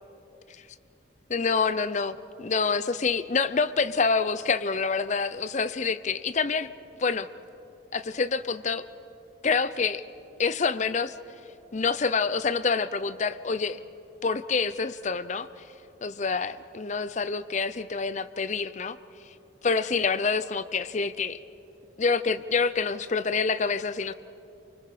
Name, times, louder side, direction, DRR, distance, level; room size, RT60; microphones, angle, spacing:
voice 1, 1.3-6.7 7.0-7.3 7.9-8.8 9.4-10.0 10.4-11.1 11.7-13.8 14.2-15.5 16.0-19.0 19.6-21.4 22.0-24.1, left 4 dB, 35° left, 14 dB, 0.5 m, -27 dB
29.5 x 25.0 x 5.0 m, 2.9 s
head